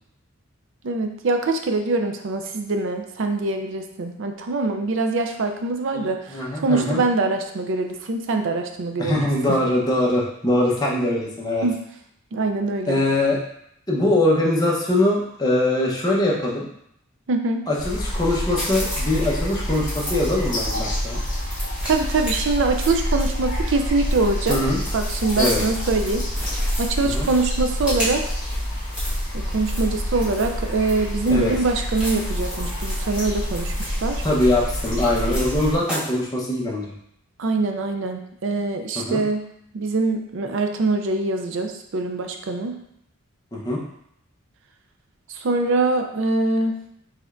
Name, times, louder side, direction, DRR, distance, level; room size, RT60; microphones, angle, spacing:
voice 1, 0.8-9.2 9.5-9.6 11.6-11.7 12.3-13.0 17.3-17.6 21.8-24.6 24.9-26.2 26.8-28.2 29.3-34.2 37.4-39.5 39.7-42.7 45.4-46.8, right 3 dB, 60° right, 5 dB, 0.4 m, -23 dB
voice 2, 5.9-7.0 9.0-11.7 12.9-13.4 13.9-16.7 17.7-21.2 24.5-24.8 25.4-25.6 27.0-27.3 31.3-31.5 34.2-36.9 38.9-39.2 43.5-43.8, left 1 dB, 20° left, -4 dB, 0.8 m, -22 dB
sound 1, 17.8-35.8, equal, 40° left, 1.2 m, -27 dB
sound 2, 18.5-36.1, equal, 5° right, 1.3 m, -35 dB
5.0 x 3.4 x 2.5 m, 0.73 s
head